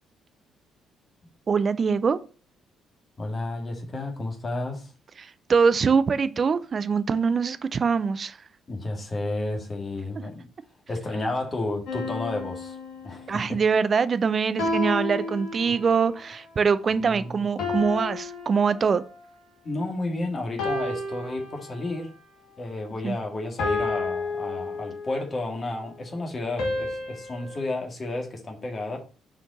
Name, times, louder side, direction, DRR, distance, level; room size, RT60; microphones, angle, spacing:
voice 1, 1.5-2.2 5.2-8.4 13.3-19.0 23.0-23.2, right 5 dB, 45° right, 0.5 m, -23 dB
voice 2, 3.2-4.9 8.7-10.5 10.9-12.8 13.0-13.4 17.0-17.4 19.6-22.1 22.6-29.0, left 2 dB, 35° left, 2.1 m, -32 dB
sound 1, 11.9-13.5 14.6-16.1 17.6-19.3 20.6-22.1 23.6-25.3 26.6-27.6, left 3 dB, 65° left, 1.6 m, -31 dB
5.9 x 4.5 x 4.2 m
figure-of-eight pair, 45°, 0 cm